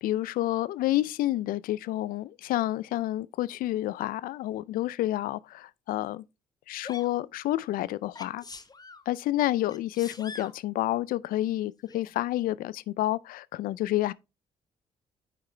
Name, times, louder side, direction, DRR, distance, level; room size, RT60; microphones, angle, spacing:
voice 1, 0.0-6.2 6.7-8.4 9.1-14.1, left 15 dB, 70° left, 0.4 m, -29 dB
Sneeze, 6.8-7.1 8.1-9.0 9.7-10.6 11.9-12.0, left 4 dB, 25° left, 0.8 m, -44 dB
8.7 x 4.8 x 3.2 m
supercardioid pair, 60°, 15 cm